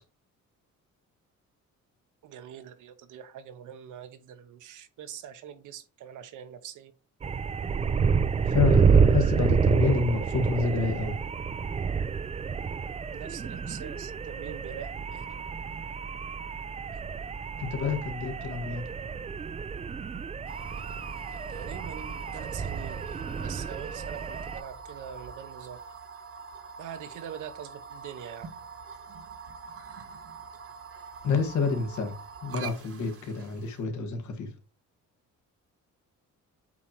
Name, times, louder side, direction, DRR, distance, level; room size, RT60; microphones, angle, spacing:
voice 1, 2.2-6.9 13.1-15.3 16.9-17.0 21.5-23.0 23.4-25.8 26.8-28.5, right 9 dB, 80° right, 1.0 m, -43 dB
sound 1, 7.2-24.6, right 6 dB, 25° right, 0.4 m, -28 dB
voice 2, 8.5-11.1 17.6-18.8 31.2-32.2 32.4-34.5, left 4 dB, 70° left, 1.6 m, -28 dB
sound 2, 20.5-33.8, right 5 dB, 50° right, 1.2 m, -45 dB
8.2 x 2.9 x 4.5 m
cardioid pair, 90°, 30 cm